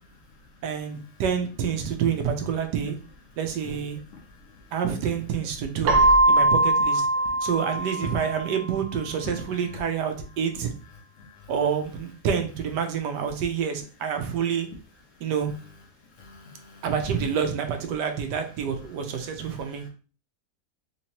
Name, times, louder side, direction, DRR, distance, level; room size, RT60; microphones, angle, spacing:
voice 1, 0.6-3.0 3.4-4.0 4.7-6.0 6.3-7.1 7.4-10.7 11.5-14.7 15.2-15.5 16.8-19.8, right 7 dB, 85° right, 6 dB, 1.3 m, -28 dB
Keyboard (musical), 5.8-8.6, right 2 dB, 65° right, 0.8 m, -21 dB
voice 2, 11.2-11.5 16.2-16.8 19.7-19.9, left 3 dB, 60° left, 1 dB, 0.9 m, -43 dB
3.6 x 2.9 x 2.8 m, 0.37 s
omnidirectional pair, 1.8 m